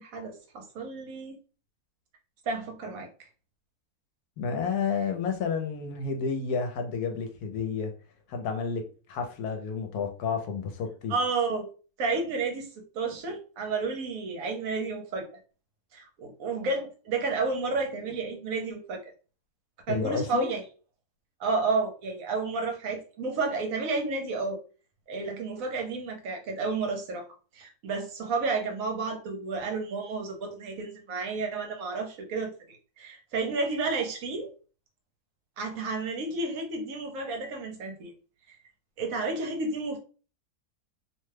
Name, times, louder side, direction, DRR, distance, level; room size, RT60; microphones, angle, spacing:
voice 1, 0.0-1.4 2.5-3.3 11.1-11.7 12.0-12.7 12.9-15.3 15.9-19.0 19.9-20.6 21.4-24.6 25.1-27.3 27.5-34.5 35.6-38.1 38.5-38.6 39.0-40.0, right 3 dB, 70° right, 3 dB, 1.0 m, -31 dB
voice 2, 4.4-7.9 8.3-8.8 9.1-11.1 19.9-20.5, left 5 dB, 85° left, 5 dB, 1.2 m, -30 dB
2.7 x 2.2 x 3.2 m, 0.36 s
omnidirectional pair, 1.7 m